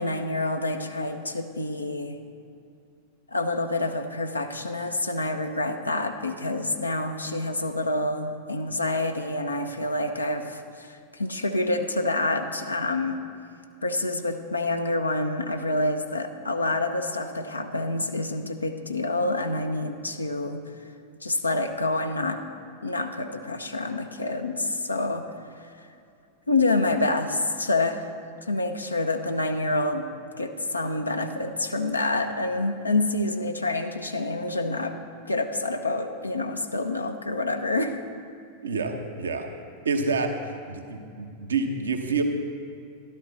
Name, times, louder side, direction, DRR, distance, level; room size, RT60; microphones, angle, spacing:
voice 1, 0.0-2.2 3.3-13.2 13.8-20.6 21.2-22.4 22.8-25.3 26.5-28.1 28.4-30.0 30.4-35.0 35.3-38.0, left 2 dB, 80° left, 5 dB, 0.7 m, -27 dB
voice 2, 38.6-39.5 39.8-42.2, right 4 dB, 70° right, 5 dB, 1.0 m, -28 dB
13.5 x 12.0 x 4.1 m, 2.5 s
figure-of-eight pair, 90°, 0 cm